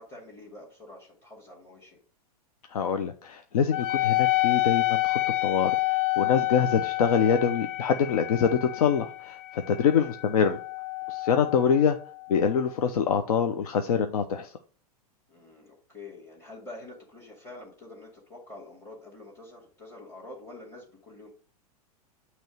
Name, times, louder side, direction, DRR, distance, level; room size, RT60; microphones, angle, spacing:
voice 1, 0.0-2.0 9.8-10.1 15.3-21.3, left 2 dB, 15° left, -3 dB, 2.5 m, -46 dB
voice 2, 2.7-5.7 6.2-10.6 11.1-12.0 12.3-14.5, left 7 dB, 65° left, 7 dB, 0.8 m, -25 dB
Wind instrument woodwind instrument, 3.7-12.6, left 20 dB, 35° left, 0.5 m, -29 dB
9.0 x 3.1 x 6.3 m, 0.41 s
figure-of-eight pair, 100°, 20 cm